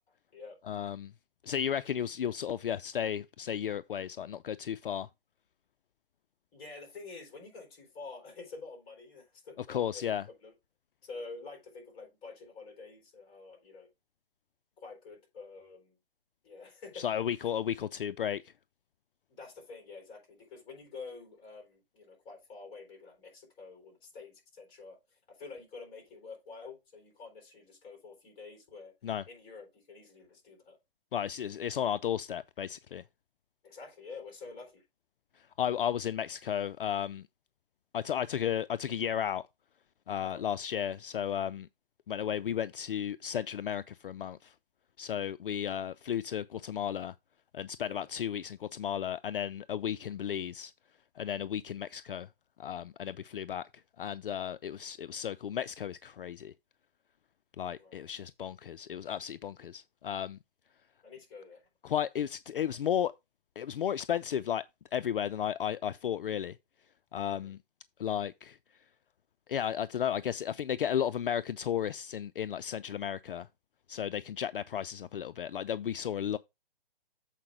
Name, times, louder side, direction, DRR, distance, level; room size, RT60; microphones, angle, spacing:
voice 1, 0.7-1.1 1.4-5.1 9.7-10.2 16.9-18.5 29.0-29.2 31.1-33.0 35.6-37.3 37.9-39.4 40.1-41.7 42.1-44.5 45.0-47.1 47.5-50.7 51.2-52.3 52.6-53.7 54.0-56.5 57.6-60.4 61.8-63.1 63.6-64.6 64.9-66.6 67.1-67.6 68.0-68.6 69.5-73.5 73.9-76.4, left 9 dB, 60° left, 0.4 m, -34 dB
voice 2, 6.5-10.0 10.4-10.5 11.0-13.9 14.8-16.0 16.4-17.1 19.3-28.9 29.3-30.8 33.6-34.8 40.2-40.4 47.8-48.1 57.7-58.3 61.0-61.6 67.3-67.5, left 4 dB, 15° left, 3.6 m, -48 dB
7.5 x 4.8 x 4.9 m
hypercardioid pair, 155°, 30 cm